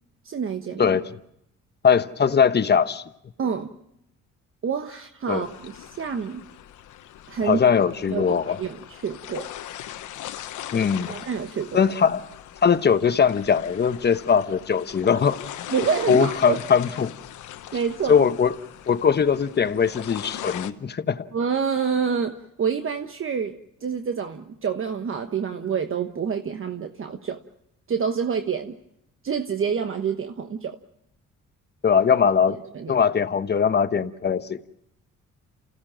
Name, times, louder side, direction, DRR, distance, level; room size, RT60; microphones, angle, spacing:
voice 1, 0.2-1.0 3.4-3.7 4.6-6.4 7.3-7.6 8.1-9.5 11.1-11.8 15.7-16.6 17.7-18.3 21.3-27.4 27.9-28.8 29.2-30.8 32.5-32.9, right 6 dB, 45° right, 1.2 m, -27 dB
voice 2, 0.8-1.1 1.8-3.0 5.3-5.5 7.4-8.6 10.7-11.1 11.7-12.2 12.6-15.4 16.1-17.1 18.1-18.5 18.9-21.3 31.8-32.6 32.9-34.6, left 6 dB, 35° left, 1.0 m, -20 dB
sound 1, 5.4-20.7, left 12 dB, 75° left, 1.1 m, -40 dB
28.0 x 16.0 x 7.5 m
cardioid pair, 90°, 30 cm